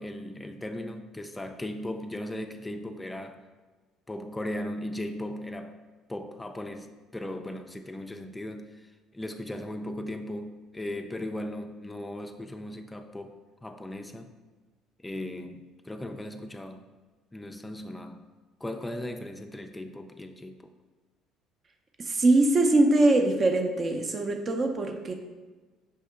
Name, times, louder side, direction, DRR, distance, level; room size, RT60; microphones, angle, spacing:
voice 1, 0.0-3.4 4.1-5.8 6.1-8.9 9.1-14.3 15.0-16.9 17.3-18.2 18.6-20.7, left 1 dB, 15° left, 6 dB, 0.3 m, -37 dB
voice 2, 22.0-25.1, right 2 dB, 40° right, 5 dB, 0.6 m, -22 dB
5.4 x 2.7 x 3.5 m, 1.3 s
hypercardioid pair, 60°, 0 cm